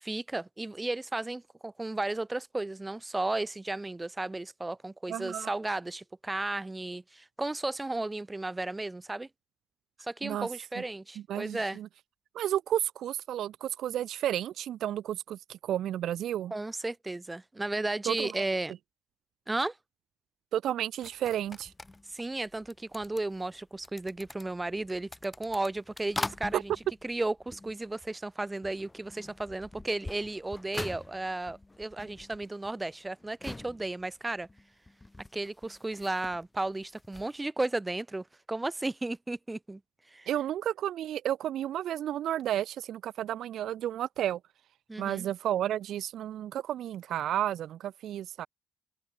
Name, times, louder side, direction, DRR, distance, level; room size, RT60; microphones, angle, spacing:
voice 1, 0.0-9.3 10.0-11.8 16.5-18.7 19.5-19.8 22.1-26.7 27.0-34.5 35.3-39.8 40.1-40.3 44.9-45.3, right 2 dB, 15° right, 1.5 m, -34 dB
voice 2, 5.1-5.5 10.2-10.5 10.8-10.9 11.2-11.9 12.3-16.5 18.1-18.3 20.5-21.7 26.5-26.6 40.3-44.4 45.0-48.5, right 11 dB, 75° right, 0.4 m, -32 dB
sound 1, 21.0-28.3 28.6-37.4, left 2 dB, 15° left, 3.4 m, -44 dB
cardioid pair, 90°, 0 cm